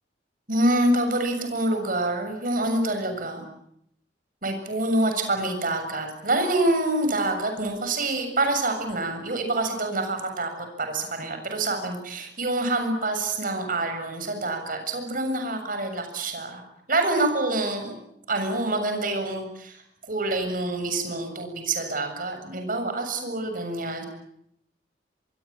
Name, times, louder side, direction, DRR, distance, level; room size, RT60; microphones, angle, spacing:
voice 1, 0.5-3.4 4.4-16.6 16.9-17.9 18.3-24.0, right 2 dB, 50° right, 6 dB, 7.2 m, -26 dB
26.0 x 23.5 x 8.8 m, 0.74 s
head